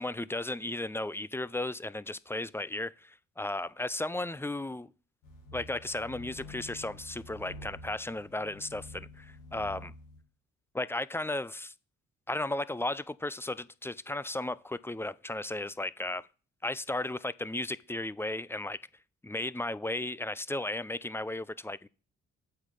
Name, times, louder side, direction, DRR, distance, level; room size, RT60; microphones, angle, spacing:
voice 1, 0.0-4.9 5.5-8.8 9.5-9.9 10.7-11.7 12.3-16.3 16.6-18.8 19.2-21.9, left 2 dB, 5° left, 0.4 m, -35 dB
sound 1, 5.2-10.2, left 2 dB, 80° left, 2.8 m, -48 dB
8.3 x 3.8 x 6.5 m
hypercardioid pair, 45°, 34 cm